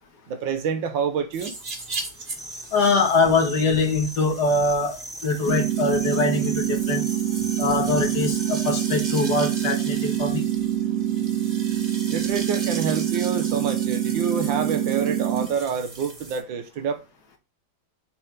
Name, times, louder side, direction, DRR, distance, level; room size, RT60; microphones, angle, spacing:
voice 1, 0.3-1.6 12.1-17.0, right 6 dB, 75° right, 1.5 m, -27 dB
sound 1, 1.3-16.4, right 3 dB, 30° right, 1.4 m, -38 dB
sound 2, 2.3-8.9, equal, 5° left, 0.7 m, -40 dB
voice 2, 2.7-7.0 7.6-10.4, left 3 dB, 60° left, 2.0 m, -23 dB
sound 3, 5.5-15.5, right 11 dB, 60° right, 1.7 m, -25 dB
6.7 x 3.6 x 5.7 m
omnidirectional pair, 2.1 m